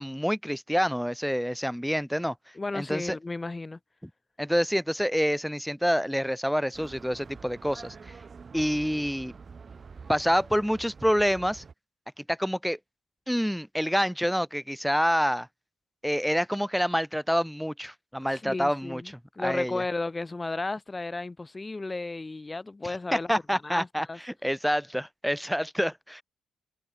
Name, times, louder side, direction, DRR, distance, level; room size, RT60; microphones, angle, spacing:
voice 1, 0.0-2.3 2.7-3.2 4.4-8.1 8.5-9.3 10.1-11.6 12.2-12.8 13.3-15.5 16.0-19.0 19.4-19.8 23.1-26.2, equal, ahead, 0.5 m, -27 dB
voice 2, 2.5-3.8 18.3-24.2, left 3 dB, 20° left, 2.6 m, -34 dB
sound 1, 6.7-11.7, right 5 dB, 40° right, 2.5 m, -46 dB
cardioid pair, 90°, 0 cm